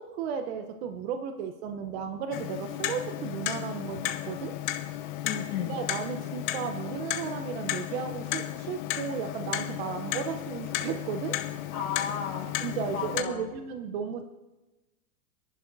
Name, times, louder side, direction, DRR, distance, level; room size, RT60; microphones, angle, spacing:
voice 1, 0.0-4.5 5.7-11.4 12.6-14.2, right 7 dB, 45° right, 8 dB, 0.8 m, -34 dB
sound 1, 1.6-13.6, left 8 dB, 55° left, 1.7 m, -53 dB
Clock, 2.3-13.2, left 13 dB, 35° left, 0.6 m, -34 dB
voice 2, 5.2-5.8 11.7-12.6 12.9-13.5, left 7 dB, 70° left, -6 dB, 2.2 m, -34 dB
28.0 x 11.0 x 2.6 m, 1.1 s
hypercardioid pair, 140°, 46 cm